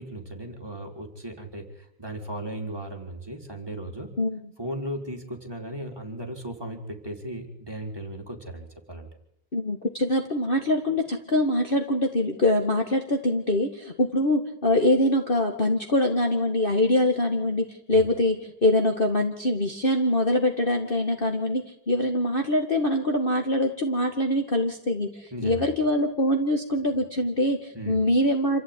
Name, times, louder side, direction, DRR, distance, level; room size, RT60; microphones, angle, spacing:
voice 1, 0.0-4.1 4.6-9.1 17.9-18.0 25.3-25.7 27.7-28.0, right 1 dB, 15° right, 1 dB, 4.3 m, -36 dB
voice 2, 9.5-28.6, left 1 dB, 30° left, 3 dB, 2.1 m, -24 dB
27.5 x 15.0 x 10.0 m, 0.80 s
omnidirectional pair, 1.9 m